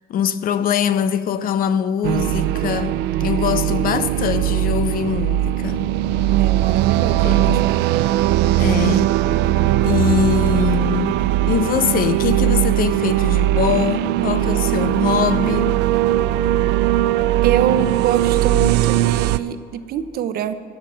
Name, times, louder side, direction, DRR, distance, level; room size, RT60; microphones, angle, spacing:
voice 1, 0.1-5.8 7.2-7.7 8.6-9.2 9.8-11.2 11.5-15.8, left 8 dB, 60° left, 0.6 m, -22 dB
sound 1, 2.0-19.4, right 14 dB, 90° right, 0.4 m, -19 dB
voice 2, 6.3-7.8 17.4-20.6, right 10 dB, 65° right, 0.7 m, -24 dB
17.0 x 5.9 x 7.6 m
cardioid pair, 110°, 17 cm